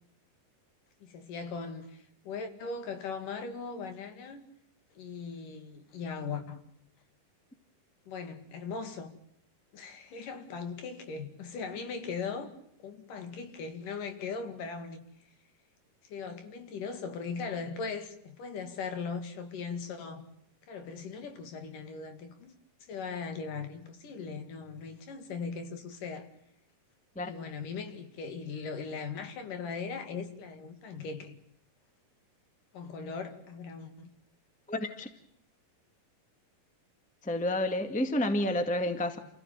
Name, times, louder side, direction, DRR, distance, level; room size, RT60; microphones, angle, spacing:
voice 1, 1.0-4.4 5.0-6.6 8.1-9.1 9.7-12.5 12.8-15.0 16.0-20.3 20.7-22.5 22.9-26.3 27.2-31.4 32.7-34.1, left 5 dB, 70° left, 3.8 m, -39 dB
voice 2, 34.7-35.1 37.2-39.2, left 1 dB, 5° left, 1.2 m, -30 dB
29.0 x 15.5 x 9.1 m
omnidirectional pair, 3.9 m